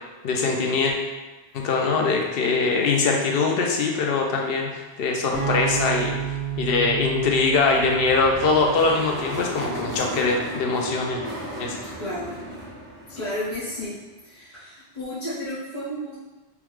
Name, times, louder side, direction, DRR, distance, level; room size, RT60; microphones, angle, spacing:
voice 1, 0.2-0.9 1.5-6.1 6.6-11.2 11.6-11.9, left 4 dB, 65° left, 1 dB, 0.7 m, -22 dB
sound 1, 5.3-9.5, right 7 dB, 10° left, 0.9 m, -31 dB
sound 2, 7.6-14.0, right 1 dB, 55° right, 1.1 m, -35 dB
voice 2, 11.8-12.3 13.1-14.0 14.2-16.2, left 1 dB, 45° left, -13 dB, 1.0 m, -32 dB
3.6 x 2.2 x 3.0 m, 1.2 s
omnidirectional pair, 1.1 m